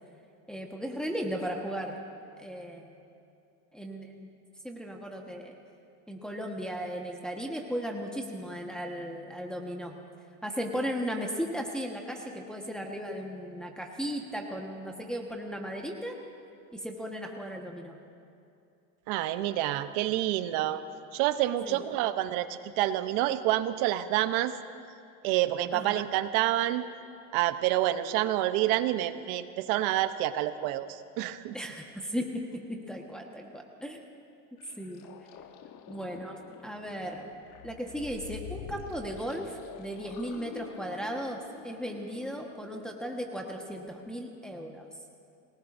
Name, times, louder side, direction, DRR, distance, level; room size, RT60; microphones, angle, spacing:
voice 1, 0.5-2.0 2.4-2.9 3.7-4.3 4.6-5.5 6.1-10.0 10.4-16.2 16.7-18.0 21.6-21.8 25.7-26.1 31.5-32.3 32.7-34.0 34.8-35.1 35.9-37.3 37.6-41.4 41.6-44.9, equal, ahead, 0 dB, 1.4 m, -36 dB
voice 2, 19.1-20.8 21.1-24.5 25.2-26.9 27.3-31.6, right 14 dB, 80° right, 11 dB, 0.9 m, -28 dB
sound 1, 34.6-43.1, left 9 dB, 55° left, 1.1 m, -48 dB
27.5 x 18.5 x 2.7 m, 2.6 s
supercardioid pair, 115°, 38 cm